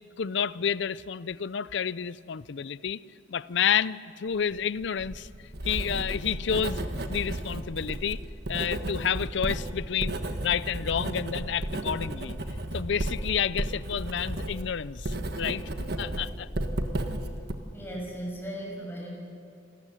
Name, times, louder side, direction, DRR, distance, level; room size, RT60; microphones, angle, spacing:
voice 1, 0.2-3.0 3.3-5.3 5.6-6.8 7.1-8.2 8.5-10.2 10.4-12.4 12.7-16.5, left 7 dB, 60° left, 18 dB, 0.5 m, -30 dB
Writing, 4.8-17.5, right 1 dB, 55° right, 1.6 m, -33 dB
voice 2, 17.7-19.1, right 1 dB, 10° left, -2 dB, 6.8 m, -36 dB
27.0 x 14.5 x 10.0 m, 2.4 s
head